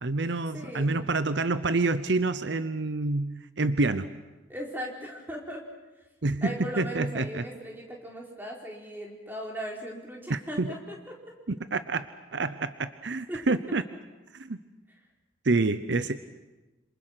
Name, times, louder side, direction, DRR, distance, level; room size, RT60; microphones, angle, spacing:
voice 1, 0.0-4.1 6.2-7.4 10.3-10.7 11.5-12.1 12.3-13.8 14.3-14.6 15.4-16.2, right 3 dB, 70° right, 12 dB, 0.8 m, -27 dB
voice 2, 0.5-1.0 4.5-5.6 6.4-11.3 13.3-13.4, equal, 10° right, -1 dB, 4.4 m, -38 dB
27.5 x 27.0 x 6.0 m, 1.1 s
head